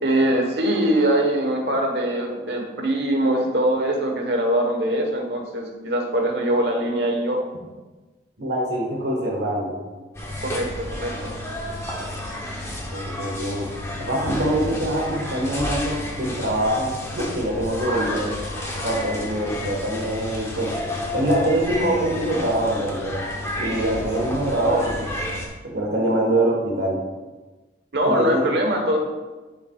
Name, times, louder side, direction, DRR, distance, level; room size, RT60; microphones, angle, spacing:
voice 1, 0.0-7.4 10.4-11.3 27.9-29.0, right 1 dB, 65° right, 2 dB, 1.2 m, -22 dB
voice 2, 8.4-9.8 12.9-13.7 14.0-18.3 18.8-20.8 21.1-23.2 23.6-25.1 25.6-27.0 28.0-28.4, right 1 dB, 90° right, -1 dB, 1.3 m, -24 dB
sound 1, 10.1-25.5, left 1 dB, 15° left, 0.9 m, -31 dB
9.9 x 5.8 x 2.4 m, 1.2 s
head